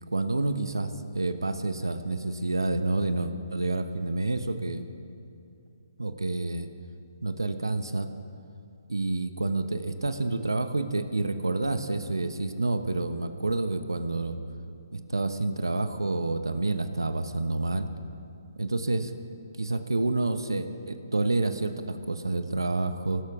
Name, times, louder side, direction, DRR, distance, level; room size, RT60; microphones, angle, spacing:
voice 1, 0.0-4.9 6.0-6.7 7.2-8.1 8.9-14.4 14.9-17.9 18.6-19.1 19.6-23.2, right 2 dB, 90° right, 9 dB, 1.0 m, -28 dB
19.5 x 17.5 x 3.6 m, 2.6 s
figure-of-eight pair, 140°, 2 cm